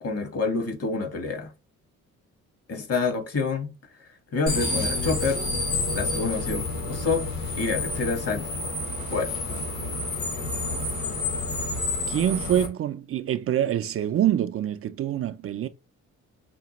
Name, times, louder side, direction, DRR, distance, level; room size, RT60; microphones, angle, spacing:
voice 1, 0.0-1.5 2.7-3.7 4.3-5.4 6.0-7.2 7.6-8.5 9.1-9.3, left 4 dB, 50° left, 1.4 m, -27 dB
sound 1, 4.5-12.7, left 2 dB, 80° left, 2.3 m, -29 dB
voice 2, 12.1-15.7, right 11 dB, 50° right, 0.4 m, -25 dB
5.8 x 2.2 x 2.9 m
cardioid pair, 90°, 30 cm